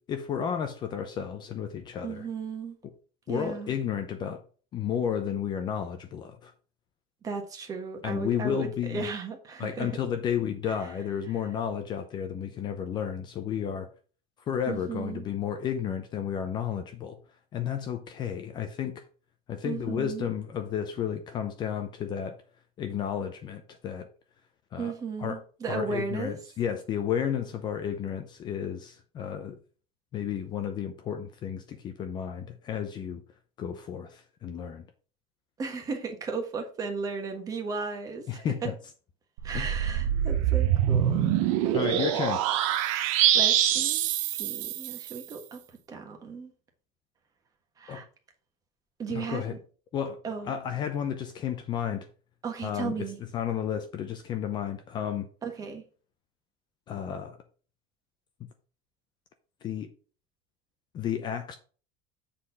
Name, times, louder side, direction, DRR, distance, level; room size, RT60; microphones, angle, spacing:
voice 1, 0.1-2.3 3.3-4.4 4.7-6.5 8.0-9.1 9.6-13.9 14.5-17.2 17.5-19.0 19.5-22.4 22.8-24.1 24.7-24.9 25.2-29.6 30.1-33.2 33.6-34.8 38.3-38.8 39.5-39.7 41.7-42.5 47.9-48.0 49.1-49.6 49.9-52.1 52.6-53.1 53.3-55.3 56.9-57.4 59.6-59.9 60.9-61.6, left 8 dB, 25° left, 0.6 m, -32 dB
voice 2, 2.0-2.8 3.3-3.8 7.2-9.9 14.7-15.3 19.6-20.3 24.8-26.4 35.6-38.7 39.4-41.3 41.6-42.0 42.8-45.6 45.9-46.5 47.8-48.0 49.0-49.6 50.2-50.5 52.4-53.2 55.4-55.8, right 4 dB, 20° right, 1.4 m, -35 dB
sound 1, 39.4-45.2, right 11 dB, 75° right, 1.0 m, -25 dB
7.5 x 4.3 x 5.7 m
cardioid pair, 175°, 18 cm